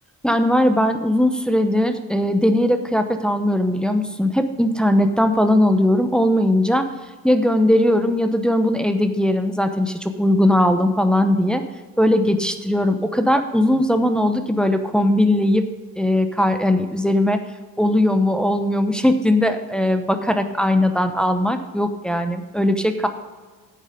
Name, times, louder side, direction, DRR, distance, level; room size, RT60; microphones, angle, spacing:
voice 1, 0.2-6.9 7.2-11.6 12.0-15.6 16.0-17.4 17.8-23.1, left 1 dB, ahead, 7 dB, 0.9 m, -19 dB
10.5 x 8.4 x 5.1 m, 1.4 s
cardioid pair, 105°, 36 cm